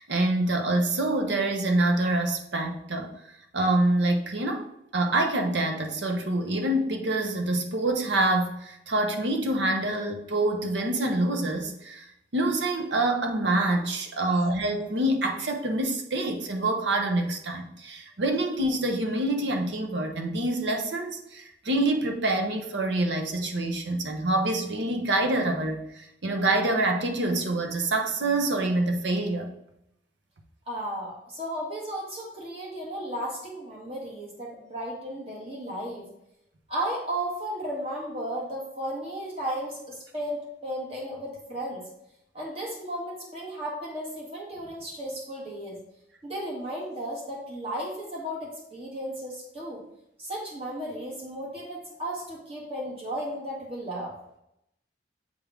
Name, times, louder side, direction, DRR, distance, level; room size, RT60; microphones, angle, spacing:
voice 1, 0.0-3.1 3.5-12.1 12.3-29.5, right 2 dB, 80° right, 3 dB, 0.8 m, -26 dB
voice 2, 30.7-36.1 36.7-41.8 42.3-45.8 46.2-49.8 50.2-54.1, right 1 dB, 35° right, -4 dB, 1.9 m, -34 dB
7.7 x 3.6 x 3.5 m, 0.81 s
head